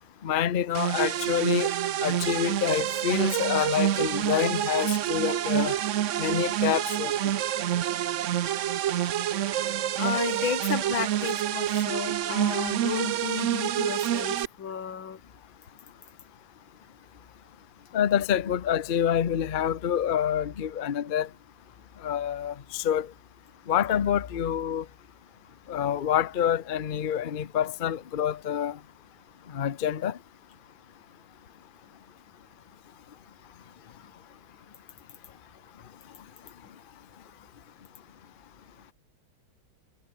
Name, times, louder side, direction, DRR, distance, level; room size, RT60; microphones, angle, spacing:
voice 1, 0.2-1.7 2.0-5.8 6.2-7.3 17.9-21.3 22.0-23.1 23.7-24.8 25.7-28.8 29.5-30.2, left 9 dB, 50° left, 0.6 m, -27 dB
sound 1, 0.7-14.5, right 11 dB, 70° right, 0.7 m, -27 dB
voice 2, 10.0-15.2, left 7 dB, 90° left, 2.7 m, -32 dB
omnidirectional pair, 2.0 m